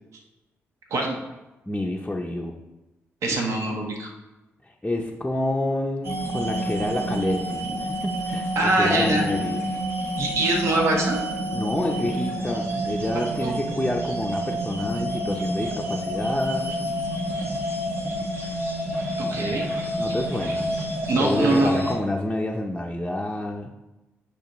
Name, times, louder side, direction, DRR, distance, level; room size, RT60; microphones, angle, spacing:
voice 1, 1.7-2.6 4.6-9.7 11.5-16.8 20.0-20.8 21.2-23.7, left 1 dB, 10° left, -1 dB, 0.6 m, -28 dB
voice 2, 3.2-4.1 8.6-9.3 10.2-11.2 13.4-13.5 19.2-19.7 21.1-21.7, right 2 dB, 70° right, 1 dB, 1.1 m, -23 dB
sound 1, 6.0-22.0, right 1 dB, 55° right, 1.5 m, -29 dB
9.1 x 5.0 x 3.0 m, 1.0 s
cardioid pair, 75°, 5 cm